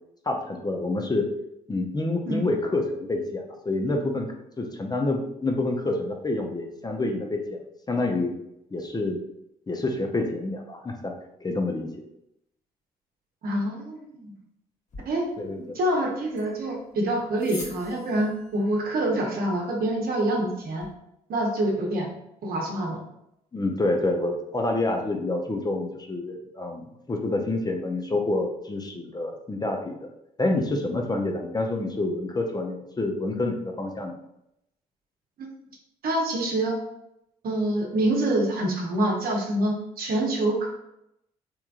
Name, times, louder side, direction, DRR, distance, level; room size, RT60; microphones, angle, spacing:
voice 1, 0.3-1.3 1.7-4.3 4.6-7.6 7.9-8.3 8.7-9.2 9.7-11.1 11.4-11.9 15.4-15.6 23.5-30.1 30.4-34.1, left 2 dB, 20° left, 2 dB, 0.6 m, -27 dB
voice 2, 13.4-14.4 15.0-15.3 15.7-20.9 21.3-22.1 22.4-23.0 35.4-35.5 36.0-36.7 37.4-40.7, right 1 dB, 55° right, 0 dB, 1.0 m, -26 dB
sound 1, 14.9-20.9, left 2 dB, 45° left, 1.1 m, -47 dB
3.4 x 3.0 x 2.4 m, 0.81 s
hypercardioid pair, 50°, 18 cm